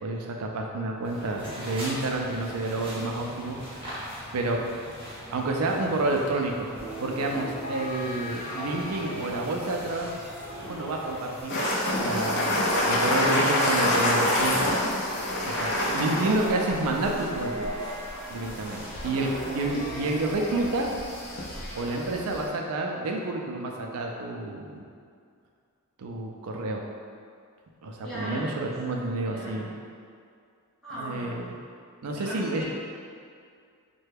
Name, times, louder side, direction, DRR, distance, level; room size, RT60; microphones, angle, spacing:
voice 1, 0.0-3.6 4.3-4.6 5.3-6.7 7.0-10.1 10.7-11.6 11.9-14.8 15.5-17.7 18.3-20.9 21.7-24.9 26.0-26.8 27.8-29.7 31.0-31.4 32.0-32.7, right 2 dB, 75° right, 1 dB, 0.4 m, -29 dB
sound 1, 1.0-11.4, equal, 25° right, 1.0 m, -42 dB
sound 2, 6.8-22.5, equal, 25° left, 1.1 m, -39 dB
sound 3, 11.5-22.5, left 1 dB, 50° left, 0.5 m, -28 dB
voice 2, 28.0-29.1 29.3-29.7 30.8-31.4 32.1-32.7, equal, ahead, -13 dB, 1.1 m, -38 dB
3.2 x 2.2 x 3.3 m, 2.3 s
head